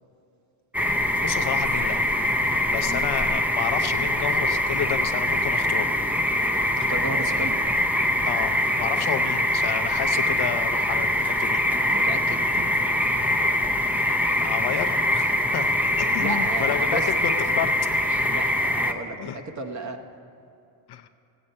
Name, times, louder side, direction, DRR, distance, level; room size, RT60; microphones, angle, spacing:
sound 1, 0.7-18.9, left 1 dB, 5° right, 0.6 m, -23 dB
voice 1, 1.2-2.2 2.7-5.8 8.2-11.6 14.4-15.7 16.0-17.9 19.2-19.4 20.9-21.1, left 10 dB, 55° left, 8 dB, 0.7 m, -31 dB
voice 2, 2.8-3.1 6.7-7.6 11.8-12.7 16.2-17.3 18.3-20.0, right 3 dB, 35° right, 5 dB, 1.1 m, -34 dB
15.5 x 8.7 x 5.4 m, 2.6 s
cardioid pair, 85°, 50 cm